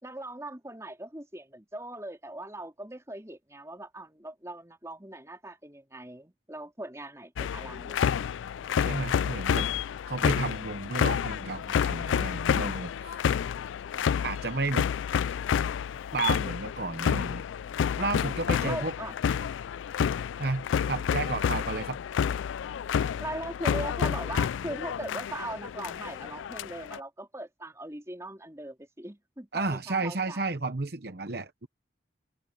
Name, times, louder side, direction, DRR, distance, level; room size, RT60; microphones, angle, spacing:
voice 1, 0.0-8.1 8.6-9.0 18.6-19.1 23.2-30.4, right 1 dB, 15° right, 3.8 m, -40 dB
sound 1, 7.4-27.0, left 8 dB, 90° left, 0.3 m, -29 dB
voice 2, 8.8-9.7 10.1-13.2 14.2-14.9 16.1-17.4 18.0-18.9 20.4-22.0 29.5-31.7, right 3 dB, 55° right, 1.0 m, -32 dB
head